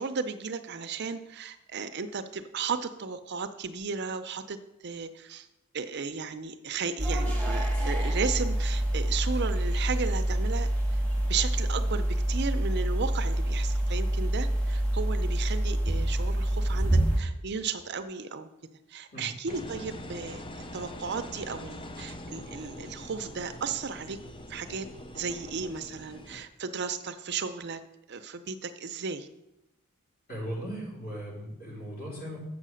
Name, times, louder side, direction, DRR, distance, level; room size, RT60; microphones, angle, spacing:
voice 1, 0.0-5.5 5.7-18.5 18.9-24.2 24.5-24.9 25.1-27.8 28.1-29.3, right 5 dB, 50° right, 9 dB, 0.6 m, -35 dB
sound 1, 7.0-17.2, right 1 dB, 5° left, 1.7 m, -27 dB
Engine, 19.5-26.5, left 1 dB, 25° left, 0.6 m, -43 dB
voice 2, 30.3-32.4, equal, 45° left, -5 dB, 4.4 m, -37 dB
8.4 x 6.6 x 6.3 m, 0.89 s
head